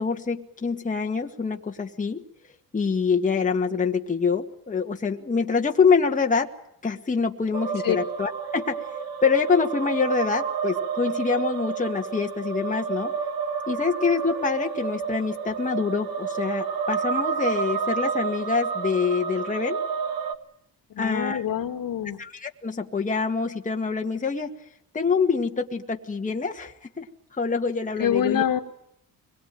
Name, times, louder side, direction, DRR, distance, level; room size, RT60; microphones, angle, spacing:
voice 1, 0.0-2.2 2.7-6.5 6.8-8.8 9.2-13.1 13.7-19.8 21.0-21.4 22.2-24.5 24.9-27.1 27.4-28.4, left 5 dB, 20° left, 2 dB, 1.9 m, -25 dB
sound 1, 7.5-20.3, right 6 dB, 70° right, 1.8 m, -30 dB
voice 2, 20.9-22.2 28.0-28.6, left 9 dB, 65° left, 5 dB, 2.3 m, -25 dB
25.5 x 22.0 x 9.2 m, 0.72 s
cardioid pair, 140°, 36 cm